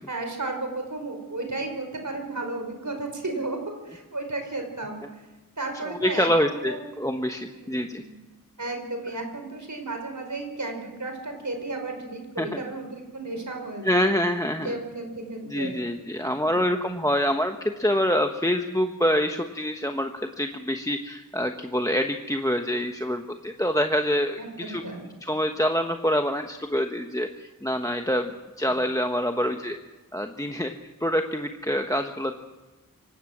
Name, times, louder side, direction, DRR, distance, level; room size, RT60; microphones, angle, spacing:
voice 1, 0.1-5.2 5.6-6.8 7.5-8.2 8.6-14.1 14.6-15.8 16.4-17.1 24.4-25.0, right 2 dB, 60° right, 4 dB, 5.4 m, -34 dB
voice 2, 5.7-8.0 12.4-12.6 13.8-14.8 15.5-24.4 24.7-24.8 25.2-29.8 30.1-30.7 31.0-32.3, equal, 10° left, 6 dB, 1.2 m, -26 dB
25.0 x 17.0 x 7.4 m, 1.2 s
wide cardioid pair, 55°, 34 cm